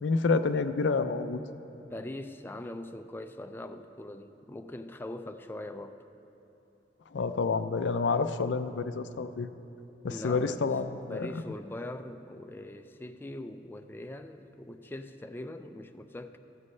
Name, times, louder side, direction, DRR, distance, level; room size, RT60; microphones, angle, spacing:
voice 1, 0.0-1.4 7.1-9.5 10.0-11.3, left 4 dB, 90° left, 10 dB, 0.5 m, -28 dB
voice 2, 1.9-6.0 10.1-16.4, left 1 dB, 10° left, 7 dB, 0.4 m, -42 dB
15.0 x 12.5 x 3.2 m, 3.0 s
head